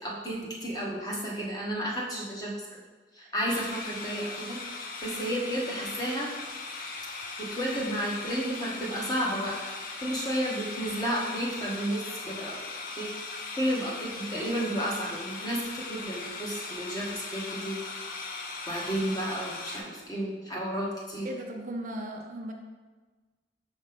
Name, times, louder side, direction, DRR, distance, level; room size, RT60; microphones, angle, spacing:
voice 1, 0.0-2.8 3.1-6.3 7.4-9.7 10.0-12.6 13.0-13.1 13.5-17.9 18.7-21.3, equal, 20° left, -3 dB, 1.2 m, -32 dB
sound 1, 3.5-19.8, left 3 dB, 50° left, 0.7 m, -39 dB
voice 2, 21.2-22.5, right 1 dB, 45° right, 2 dB, 0.6 m, -36 dB
5.8 x 3.1 x 5.2 m, 1.3 s
head